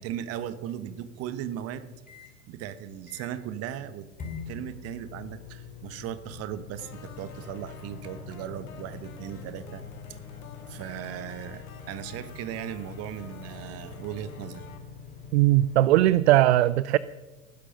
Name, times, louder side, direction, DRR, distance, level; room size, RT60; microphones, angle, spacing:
voice 1, 0.0-1.9 2.5-4.1 4.5-9.8 10.7-14.6, right 10 dB, 35° right, 1.2 m, -37 dB
sound 1, 0.5-2.3 2.8-2.9 3.1-3.5 4.2-16.2, left 6 dB, 20° left, 3.7 m, -45 dB
sound 2, 6.8-14.8, left 5 dB, 70° left, 2.3 m, -48 dB
voice 2, 15.3-17.0, right 15 dB, 50° right, 0.5 m, -19 dB
18.5 x 10.5 x 5.4 m
figure-of-eight pair, 100°, 44 cm